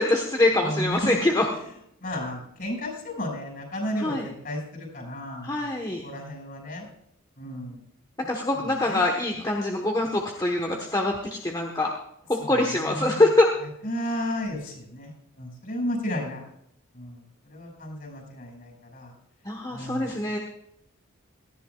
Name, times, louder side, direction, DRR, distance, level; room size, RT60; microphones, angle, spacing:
voice 1, 0.0-1.5 4.0-4.3 5.4-6.0 8.2-11.1 11.4-11.9 12.5-13.5 19.4-20.4, left 2 dB, 20° left, 1 dB, 1.2 m, -24 dB
voice 2, 0.6-1.2 2.0-4.6 4.9-5.7 6.0-6.8 7.4-7.8 8.5-9.0 12.4-13.2 13.8-15.1 15.4-16.4 16.9-17.2 17.5-19.1 19.7-20.1, left 1 dB, 45° left, 1 dB, 6.0 m, -33 dB
18.0 x 14.5 x 2.4 m, 0.75 s
head